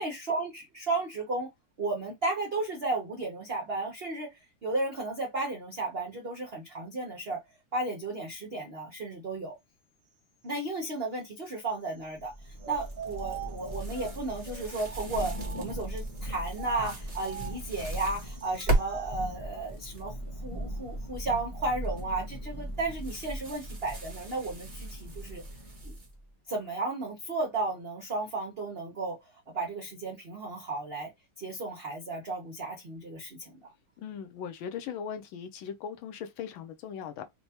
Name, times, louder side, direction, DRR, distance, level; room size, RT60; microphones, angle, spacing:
voice 1, 0.0-1.5 1.8-4.3 4.6-7.4 7.7-9.6 10.4-25.4 25.8-25.9 26.5-29.2 29.5-31.1 31.4-33.7, right 2 dB, 75° right, 0.5 m, -34 dB
Thunder / Rain, 12.1-26.2, right 1 dB, 45° left, 0.4 m, -39 dB
sound 1, 12.6-16.0 16.5-19.4, right 9 dB, 60° right, 1.0 m, -44 dB
sound 2, 12.8-18.9 19.4-20.0 21.8-22.2 22.9-26.1, right 2 dB, 20° right, 1.0 m, -37 dB
voice 2, 34.0-37.2, left 7 dB, 75° left, 1.4 m, -39 dB
4.4 x 2.2 x 2.8 m
omnidirectional pair, 2.3 m